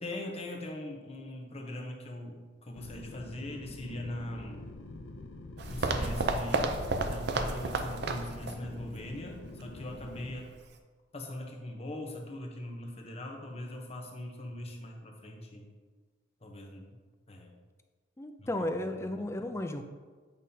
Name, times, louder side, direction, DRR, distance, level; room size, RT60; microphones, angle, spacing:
voice 1, 0.0-4.7 5.7-6.7 7.0-10.5 11.1-15.7 16.4-17.0 17.3-17.5 18.4-19.1 19.4-19.5, left 1 dB, 35° left, 1 dB, 0.9 m, -41 dB
sound 1, 2.8-10.3, left 2 dB, 85° left, 0.6 m, -46 dB
sound 2, 5.6-8.6 8.9-9.0 9.6-9.7, right 3 dB, 60° right, 0.5 m, -31 dB
voice 2, 18.2-19.8, left 1 dB, 15° left, 7 dB, 0.4 m, -34 dB
8.3 x 5.4 x 2.8 m, 1.4 s
head